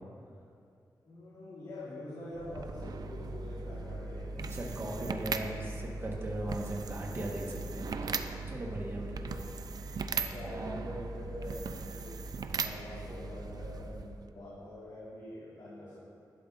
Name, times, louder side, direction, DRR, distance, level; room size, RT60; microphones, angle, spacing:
voice 1, 1.0-4.5 4.8-5.8 8.9-9.4 10.1-12.2 12.5-16.0, left 1 dB, 80° left, -12 dB, 2.6 m, -46 dB
sound 1, 2.3-14.3, right 4 dB, 65° right, 0.4 m, -38 dB
voice 2, 4.5-8.2 8.5-9.3 9.9-10.1 10.4-10.9, right 1 dB, 35° right, -1 dB, 1.3 m, -39 dB
11.5 x 11.0 x 2.6 m, 2.4 s
wide cardioid pair, 130°, 7 cm